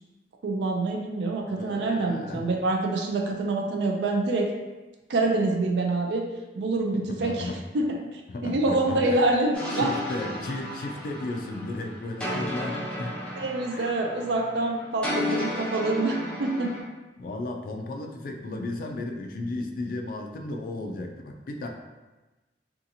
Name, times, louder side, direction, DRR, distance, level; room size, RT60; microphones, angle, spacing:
voice 1, 0.4-4.5 5.1-6.2 6.5-7.5 7.7-9.9 13.4-16.8, right 2 dB, 75° right, 2 dB, 0.4 m, -26 dB
voice 2, 1.5-2.5 7.2-7.6 8.3-9.3 9.7-13.2 13.7-13.9 17.2-21.7, left 2 dB, 50° left, 3 dB, 0.3 m, -34 dB
sound 1, 9.5-16.8, left 1 dB, 5° left, 0.6 m, -33 dB
2.7 x 2.4 x 2.6 m, 1.1 s
head